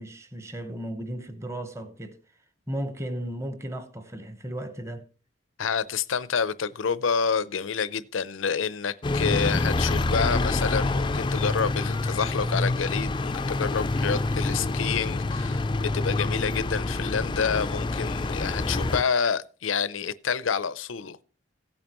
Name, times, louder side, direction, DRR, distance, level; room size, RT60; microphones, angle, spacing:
voice 1, 0.0-2.2 2.7-5.0, right 1 dB, 15° right, 1.0 m, -35 dB
voice 2, 5.6-21.2, left 6 dB, 90° left, 0.6 m, -28 dB
sound 1, 9.0-19.0, left 2 dB, 25° left, 0.4 m, -27 dB
16.0 x 8.8 x 3.0 m
head